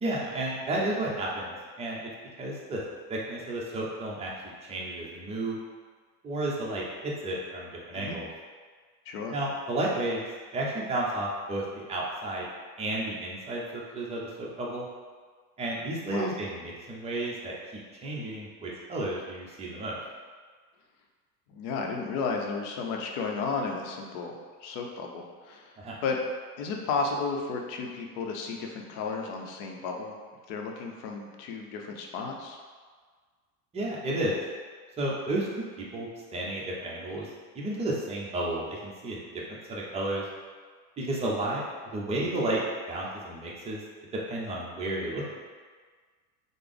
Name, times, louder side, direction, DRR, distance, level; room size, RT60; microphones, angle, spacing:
voice 1, 0.0-2.0 2.4-2.8 3.1-4.3 4.7-5.6 6.2-8.3 9.3-10.2 10.5-12.5 12.8-14.9 15.6-17.5 18.0-20.0 25.8-25.9 33.7-34.4 35.0-35.5 35.8-37.3 37.5-39.4 39.7-40.2 41.0-41.6 41.9-43.8 44.3-45.3, right 1 dB, 15° right, -4 dB, 0.5 m, -32 dB
voice 2, 9.1-9.4 16.1-16.3 21.5-26.2 26.6-30.2 30.5-32.6, left 4 dB, 55° left, 1 dB, 0.6 m, -33 dB
3.3 x 2.0 x 3.7 m, 1.5 s
supercardioid pair, 120°, 45 cm